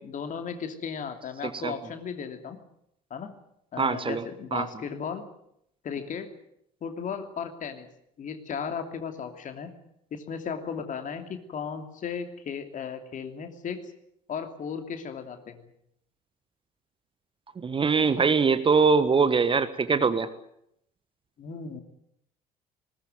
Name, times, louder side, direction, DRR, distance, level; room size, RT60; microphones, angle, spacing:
voice 1, 0.0-2.6 3.1-3.4 3.7-5.2 5.8-6.3 6.8-7.9 8.2-9.7 10.1-13.8 14.3-15.7 21.4-21.8, left 6 dB, 40° left, 7 dB, 2.9 m, -35 dB
voice 2, 3.8-4.2 4.5-4.7 17.6-20.3, right 5 dB, 25° right, 13 dB, 1.4 m, -22 dB
20.0 x 19.5 x 9.3 m, 0.75 s
figure-of-eight pair, 55°, 20 cm